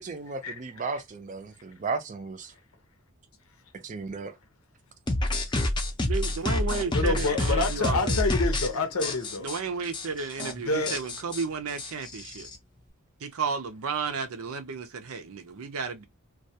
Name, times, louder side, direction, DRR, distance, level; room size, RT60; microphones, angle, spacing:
voice 1, 0.0-2.5 3.7-4.4, right 4 dB, 35° right, 0.4 m, -35 dB
sound 1, 5.1-8.7 9.0-9.6 9.9-10.1 10.3-10.5 10.9-12.6, left 1 dB, 20° left, 0.5 m, -28 dB
voice 2, 6.0-8.2 9.4-12.5 13.2-16.0, right 5 dB, 85° right, 0.5 m, -33 dB
voice 3, 6.9-9.5 10.7-11.0, left 3 dB, 85° left, 0.7 m, -27 dB
2.3 x 2.2 x 2.7 m
head